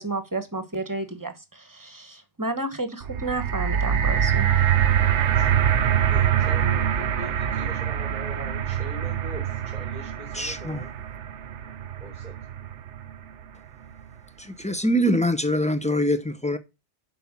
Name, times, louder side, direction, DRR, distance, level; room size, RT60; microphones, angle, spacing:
voice 1, 0.0-4.5, right 2 dB, 20° right, 1.1 m, -31 dB
sound 1, 3.0-13.2 14.0-14.1, right 9 dB, 85° right, 1.0 m, -24 dB
voice 2, 5.3-5.7 6.1-10.9 12.0-12.4, left 1 dB, 45° left, 3.4 m, -41 dB
voice 3, 10.3-10.8 14.4-16.6, equal, 10° left, 0.6 m, -24 dB
7.8 x 5.5 x 7.3 m
omnidirectional pair, 1.2 m